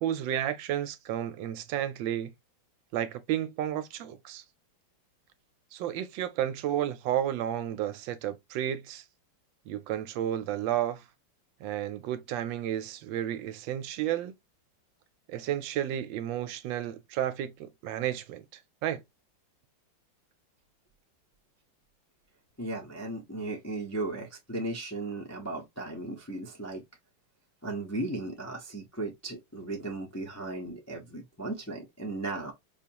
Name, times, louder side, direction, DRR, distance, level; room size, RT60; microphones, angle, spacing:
voice 1, 0.0-2.3 2.9-4.4 5.7-9.0 9.7-11.0 11.6-14.3 15.3-18.4 18.8-19.0, right 11 dB, 75° right, 1.2 m, -32 dB
voice 2, 22.6-26.8 27.6-32.5, right 2 dB, 20° left, 0.4 m, -36 dB
4.9 x 2.4 x 2.8 m
omnidirectional pair, 2.1 m